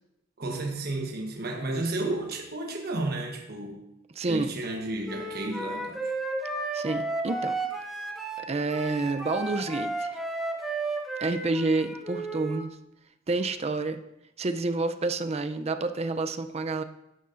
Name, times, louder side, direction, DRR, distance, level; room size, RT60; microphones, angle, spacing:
voice 1, 0.4-3.8 4.3-6.1, right 2 dB, 55° right, 1.1 m, -32 dB
voice 2, 4.2-4.5 6.7-7.5 8.5-10.2 11.2-12.8 13.3-14.0 14.4-16.8, right 3 dB, 35° right, 0.5 m, -29 dB
Wind instrument woodwind instrument, 5.1-12.6, right 2 dB, ahead, 1.0 m, -33 dB
11.0 x 11.0 x 2.6 m
head